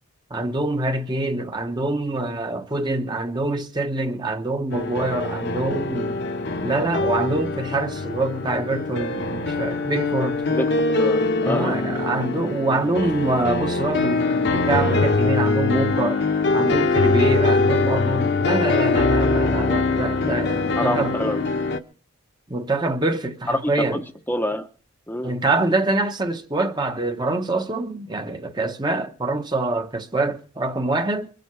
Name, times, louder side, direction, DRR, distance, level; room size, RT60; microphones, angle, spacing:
voice 1, 0.3-6.1 6.6-10.4 11.4-16.2 16.5-21.1 22.5-24.0 25.2-31.3, right 2 dB, 20° right, 0.9 m, -25 dB
sound 1, 4.7-21.8, left 3 dB, 55° left, 1.0 m, -23 dB
voice 2, 10.5-11.8 20.8-21.5 23.5-24.0 24.3-24.7 25.1-25.3, equal, 10° left, 0.8 m, -26 dB
22.5 x 7.7 x 5.8 m
head